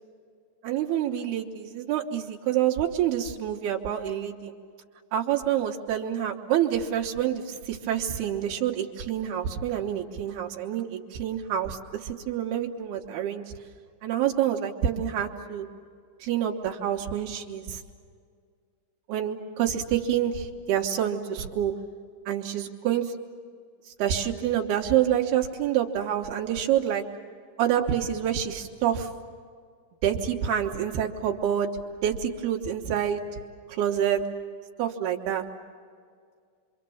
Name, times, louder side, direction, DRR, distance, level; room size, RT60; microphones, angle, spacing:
voice 1, 0.6-4.5 5.1-13.5 14.0-15.7 16.2-17.8 19.1-21.7 22.3-23.1 24.0-27.0 27.6-29.1 30.0-31.7 32.0-33.2 33.8-34.2 34.8-35.4, right 10 dB, 80° right, 0 dB, 3.2 m, -27 dB
26.5 x 26.0 x 7.1 m, 2.1 s
omnidirectional pair, 4.6 m